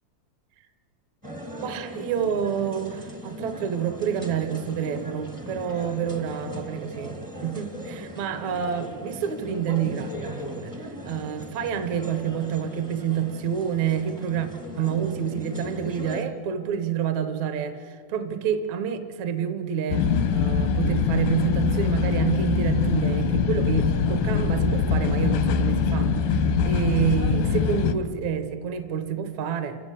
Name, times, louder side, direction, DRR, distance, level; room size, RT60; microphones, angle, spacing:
sound 1, 1.2-16.2, equal, 15° right, 0.7 m, -39 dB
voice 1, 1.6-14.5 14.8-29.8, right 8 dB, 65° right, 9 dB, 2.1 m, -28 dB
sound 2, 19.9-28.0, left 6 dB, 85° left, 2.9 m, -23 dB
29.0 x 15.0 x 8.4 m, 2.1 s
omnidirectional pair, 3.9 m